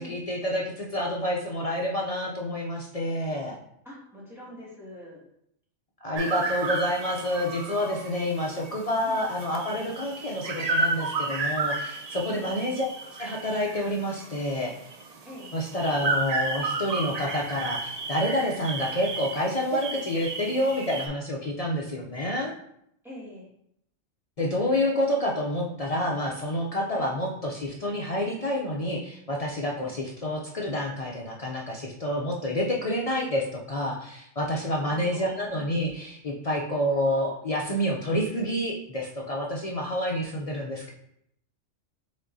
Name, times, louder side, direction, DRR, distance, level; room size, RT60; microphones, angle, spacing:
voice 1, 0.0-3.6 6.0-12.9 13.2-14.8 15.5-22.5 24.4-40.9, left 1 dB, 55° left, -1 dB, 0.4 m, -28 dB
voice 2, 3.8-5.2 9.0-9.2 12.3-12.5 15.2-15.5 23.0-23.5 26.9-27.1 29.8-30.0 34.7-35.3, equal, ahead, -8 dB, 1.7 m, -44 dB
sound 1, 6.1-21.1, right 3 dB, 50° right, 0.5 m, -32 dB
5.1 x 3.7 x 2.6 m, 0.73 s
omnidirectional pair, 1.2 m